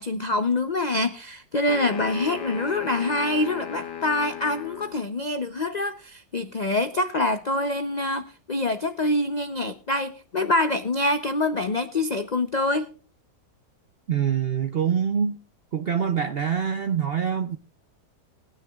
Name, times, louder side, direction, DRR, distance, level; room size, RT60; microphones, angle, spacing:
voice 1, 0.0-12.9, left 2 dB, 60° left, 0.4 m, -25 dB
sound 1, 1.7-5.0, left 9 dB, 85° left, 1.7 m, -36 dB
voice 2, 14.1-15.4 15.7-17.6, right 8 dB, 60° right, 0.6 m, -25 dB
20.5 x 9.9 x 2.4 m
omnidirectional pair, 1.7 m